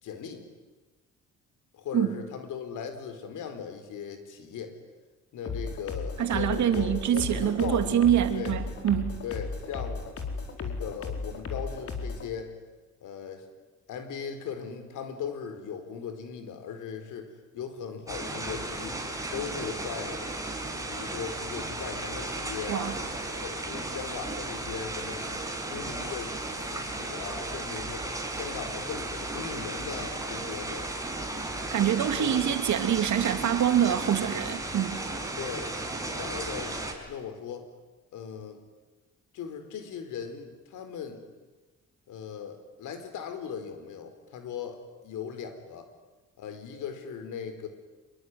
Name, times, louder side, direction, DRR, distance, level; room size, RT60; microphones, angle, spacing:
voice 1, 0.0-0.5 1.7-4.8 5.3-8.5 9.2-10.0 10.6-12.5 13.0-13.5 13.9-19.0 19.3-20.2 20.9-23.0 23.4-25.3 25.6-28.1 28.3-30.9 31.7-32.4 32.7-32.8 35.4-35.7 36.1-37.7 38.1-38.6 39.3-41.2 42.1-45.9 46.4-47.7, left 7 dB, 80° left, 8 dB, 4.5 m, -38 dB
sound 1, 5.5-12.3, left 4 dB, 50° left, 4.6 m, -35 dB
voice 2, 6.2-9.1 22.7-23.0 31.7-35.1, right 10 dB, 70° right, 8 dB, 3.0 m, -25 dB
sound 2, 18.1-36.9, right 2 dB, 10° right, 5.7 m, -35 dB
26.5 x 23.5 x 9.7 m, 1.2 s
cardioid pair, 90°, 30 cm